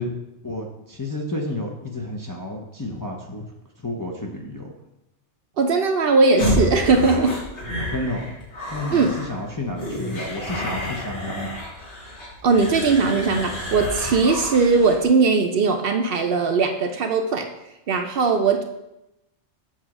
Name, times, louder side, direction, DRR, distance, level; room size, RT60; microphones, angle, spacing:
voice 1, 0.0-3.5 3.8-4.7 7.9-8.4 8.7-11.5, left 2 dB, 25° left, -1 dB, 0.5 m, -31 dB
voice 2, 5.6-7.4 8.9-9.1 12.4-17.5 17.9-18.6, right 4 dB, 60° right, 5 dB, 0.7 m, -19 dB
sound 1, 6.4-15.0, left 1 dB, 70° left, 1.8 m, -29 dB
7.3 x 2.9 x 5.9 m, 0.90 s
omnidirectional pair, 1.2 m